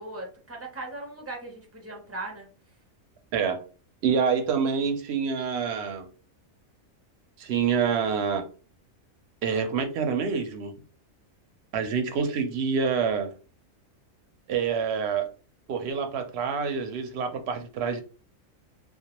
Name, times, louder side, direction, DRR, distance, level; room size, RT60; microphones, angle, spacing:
voice 1, 0.0-2.5, right 2 dB, 20° right, 0.4 m, -38 dB
voice 2, 3.3-3.6 4.0-6.1 7.4-8.5 9.4-10.7 11.7-13.3 14.5-15.3 15.7-18.0, right 6 dB, 65° right, 0.7 m, -27 dB
2.3 x 2.1 x 2.9 m
omnidirectional pair, 1.4 m